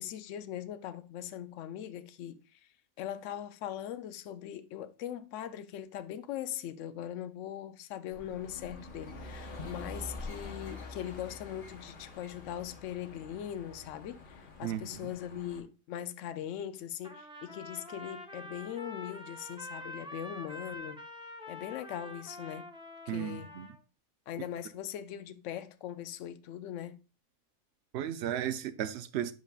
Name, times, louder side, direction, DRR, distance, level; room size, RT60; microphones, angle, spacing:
voice 1, 0.0-2.6 3.0-21.0 21.5-22.7 23.1-23.5 24.3-27.0, left 10 dB, 70° left, 0.8 m, -40 dB
sound 1, 8.1-15.6, left 2 dB, 40° left, 1.3 m, -46 dB
voice 2, 14.6-15.1 23.1-23.7 27.9-29.3, right 11 dB, 65° right, 0.7 m, -35 dB
Trumpet, 17.0-23.8, left 1 dB, 5° right, 0.5 m, -46 dB
8.1 x 5.2 x 2.4 m
omnidirectional pair, 1.5 m